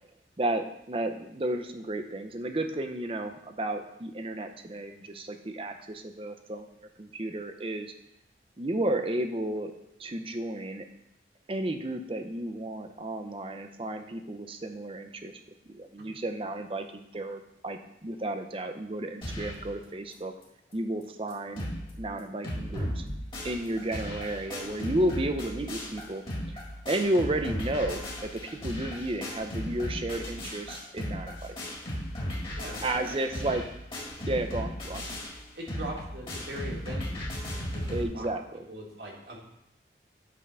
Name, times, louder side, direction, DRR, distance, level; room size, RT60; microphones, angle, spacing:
voice 1, 0.4-6.7 7.0-7.9 8.6-9.7 10.0-10.9 11.5-15.4 15.7-20.3 20.7-21.7 22.0-23.0 23.4-26.2 26.9-31.6 32.8-33.6 34.3-35.1 37.9-38.6, right 1 dB, 30° right, 6 dB, 0.6 m, -32 dB
sound 1, 19.2-19.7 20.1-20.2 20.4-20.5 21.0-21.1 21.3-21.9 22.2-38.0, equal, 30° left, 1.7 m, -36 dB
voice 2, 32.5-33.5 34.2-34.4 35.5-38.3 38.7-39.4, right 1 dB, 75° right, -2 dB, 1.8 m, -42 dB
8.5 x 3.6 x 5.5 m, 0.84 s
head